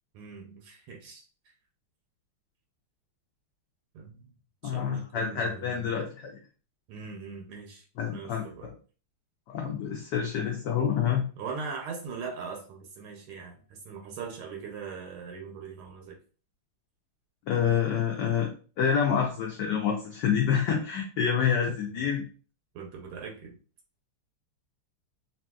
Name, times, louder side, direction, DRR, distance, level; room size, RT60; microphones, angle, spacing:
voice 1, 0.1-1.2 3.9-4.3 4.6-5.9 6.9-8.7 11.4-16.2 21.3-21.8 22.7-23.6, right 5 dB, 80° right, 1 dB, 1.5 m, -41 dB
voice 2, 4.6-6.3 8.0-8.7 9.5-11.2 17.5-18.5 18.8-22.2, left 7 dB, 75° left, 0 dB, 1.0 m, -27 dB
3.4 x 2.7 x 2.2 m, 0.37 s
omnidirectional pair, 2.4 m